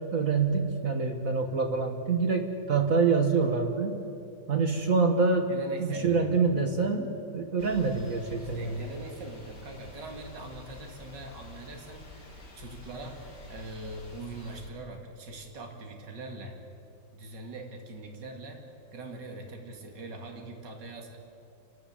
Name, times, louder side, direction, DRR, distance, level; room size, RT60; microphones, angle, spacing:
voice 1, 0.0-4.0 4.5-8.8, right 4 dB, 50° right, 4 dB, 1.7 m, -26 dB
voice 2, 5.5-6.5 8.4-16.6 17.1-18.7 18.9-21.2, right 2 dB, 65° right, 2 dB, 2.7 m, -42 dB
sound 1, 7.6-14.7, left 3 dB, 45° left, 3.2 m, -48 dB
28.0 x 13.0 x 8.8 m, 2.6 s
omnidirectional pair, 2.1 m